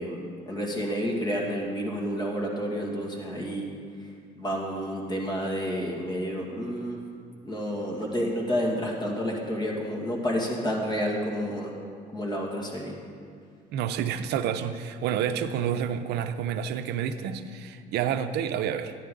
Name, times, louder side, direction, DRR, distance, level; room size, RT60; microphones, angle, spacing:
voice 1, 0.0-3.7 4.0-4.1 4.4-7.0 7.4-11.7 12.1-13.0, equal, 25° left, -1 dB, 2.1 m, -30 dB
voice 2, 13.7-18.9, right 8 dB, 80° right, 10 dB, 0.5 m, -29 dB
12.0 x 10.0 x 3.8 m, 2.3 s
cardioid pair, 110°, 17 cm